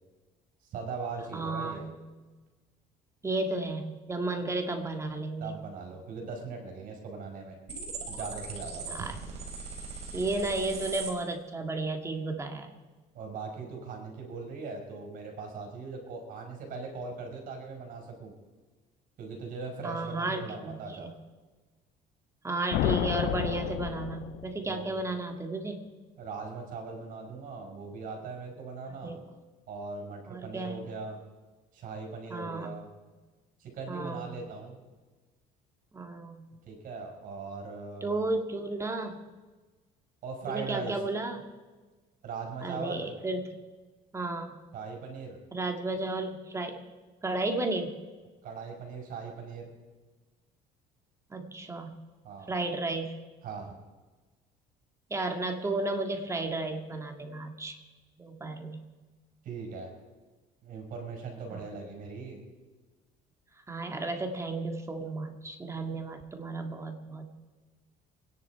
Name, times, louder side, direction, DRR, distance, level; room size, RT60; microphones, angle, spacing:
voice 1, 0.7-1.9 5.4-7.6 8.1-9.1 13.1-18.3 19.2-21.1 24.6-24.9 26.2-29.1 29.7-31.2 31.7-32.9 33.6-34.8 36.6-38.3 40.2-41.0 42.2-43.1 44.7-45.4 48.4-49.7 52.2-52.5 53.4-53.8 59.4-59.9 60.6-62.4, right 4 dB, 60° right, 3 dB, 5.1 m, -40 dB
voice 2, 1.3-1.8 3.2-5.6 8.9-9.2 10.1-12.7 19.8-21.1 22.4-25.8 29.0-29.2 30.3-30.8 32.3-32.7 33.9-34.3 35.9-36.5 38.0-39.2 40.5-41.4 42.6-43.5 44.1-44.6 45.5-46.8 47.2-48.0 51.3-51.9 52.5-53.1 55.1-57.8 58.2-58.8 61.5-61.6 63.7-67.3, right 2 dB, 15° right, 4 dB, 1.9 m, -33 dB
sound 1, 7.7-11.1, right 4 dB, 40° right, 3.9 m, -39 dB
sound 2, 22.7-24.8, left 15 dB, 70° left, 0.5 m, -31 dB
27.5 x 10.5 x 4.7 m, 1.3 s
cardioid pair, 120°, 16 cm